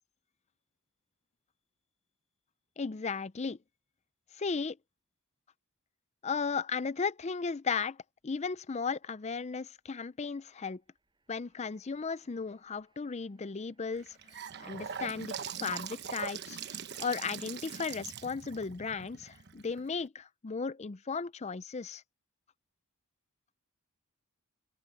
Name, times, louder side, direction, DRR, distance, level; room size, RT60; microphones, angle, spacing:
voice 1, 2.8-3.6 4.4-4.8 6.2-8.0 8.2-10.8 11.3-14.2 14.6-16.6 17.0-22.0, left 5 dB, 30° left, 0.5 m, -35 dB
sound 1, 8.2-15.4, right 3 dB, 20° right, 7.7 m, -76 dB
Gurgling / Sink (filling or washing) / Bathtub (filling or washing), 13.9-20.0, right 7 dB, 50° right, 1.1 m, -42 dB
head